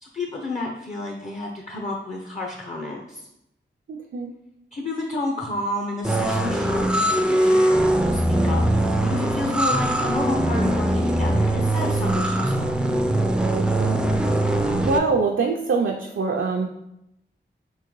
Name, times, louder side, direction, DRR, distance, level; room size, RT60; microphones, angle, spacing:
voice 1, 0.0-3.3 4.7-12.8, left 2 dB, 35° left, 0 dB, 0.6 m, -31 dB
voice 2, 3.9-4.3 13.5-14.0 14.8-16.7, right 4 dB, 80° right, 1 dB, 0.4 m, -24 dB
sound 1, 6.0-15.0, right 1 dB, 5° right, 0.3 m, -21 dB
4.3 x 3.7 x 3.0 m, 0.81 s
wide cardioid pair, 70°, 20 cm